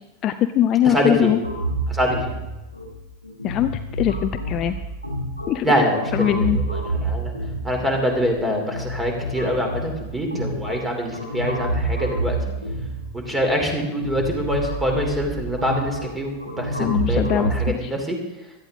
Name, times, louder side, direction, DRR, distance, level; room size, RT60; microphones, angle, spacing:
voice 1, 0.2-1.4 3.4-4.8 5.5-5.7 6.1-6.6 16.8-17.9, left 11 dB, 35° left, 9 dB, 0.6 m, -21 dB
voice 2, 0.8-1.3 1.9-2.3 5.6-7.3 7.6-12.4 13.3-18.2, equal, 10° right, 3 dB, 3.1 m, -24 dB
sound 1, 1.4-17.7, right 1 dB, 90° right, 2.5 m, -29 dB
17.0 x 13.0 x 3.7 m, 1.0 s
figure-of-eight pair, 90°, 0 cm